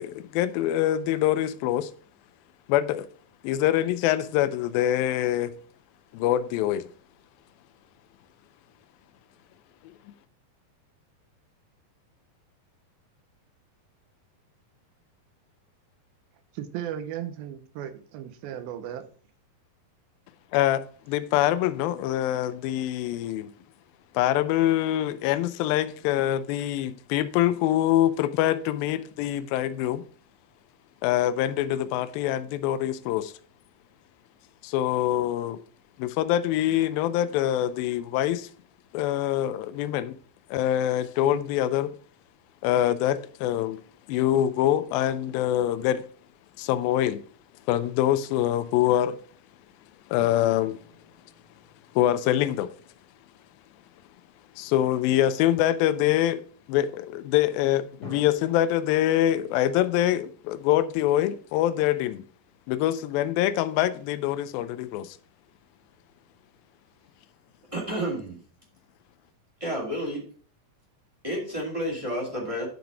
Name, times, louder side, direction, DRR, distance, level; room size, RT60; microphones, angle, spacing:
voice 1, 0.0-1.9 2.7-3.1 3.4-5.5 6.1-6.9 20.5-23.5 24.1-30.0 31.0-33.3 34.6-35.6 36.0-38.5 38.9-40.2 40.5-41.9 42.6-43.8 44.1-46.0 46.6-47.2 47.7-49.2 50.1-50.8 52.0-52.7 54.6-56.4 56.7-62.2 62.7-65.2, left 12 dB, 80° left, 2.3 m, -24 dB
voice 2, 16.5-19.0, right 10 dB, 80° right, 2.5 m, -36 dB
sound 1, 50.2-53.1 58.0-58.3, left 2 dB, 45° left, 1.3 m, -48 dB
voice 3, 67.7-68.4 69.6-70.2 71.2-72.7, equal, 20° right, 1.0 m, -30 dB
9.4 x 4.0 x 4.8 m
omnidirectional pair, 4.3 m